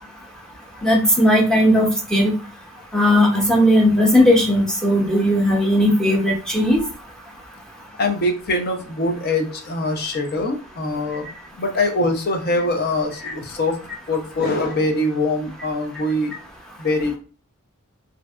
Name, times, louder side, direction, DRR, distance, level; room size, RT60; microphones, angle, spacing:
voice 1, 0.8-2.3 2.9-6.8 13.2-13.3, equal, 5° left, -2 dB, 0.7 m, -17 dB
voice 2, 8.0-13.8 14.1-16.3 16.8-17.2, left 2 dB, 45° left, 4 dB, 0.5 m, -23 dB
3.2 x 2.6 x 2.3 m, 0.38 s
head